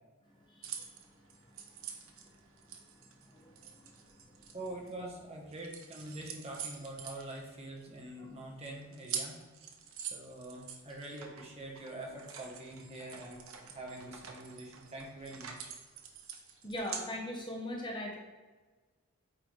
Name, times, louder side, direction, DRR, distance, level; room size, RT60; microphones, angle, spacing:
voice 1, 0.5-0.9 3.3-3.9 16.6-18.2, left 1 dB, 20° left, -1 dB, 0.8 m, -40 dB
sound 1, 0.6-5.1 5.5-8.0 8.3-8.4 8.6-17.1, right 7 dB, 65° right, 0.8 m, -46 dB
voice 2, 4.5-9.4 10.0-15.7, right 1 dB, 30° right, 0 dB, 1.0 m, -45 dB
8.8 x 3.9 x 3.1 m, 1.4 s
head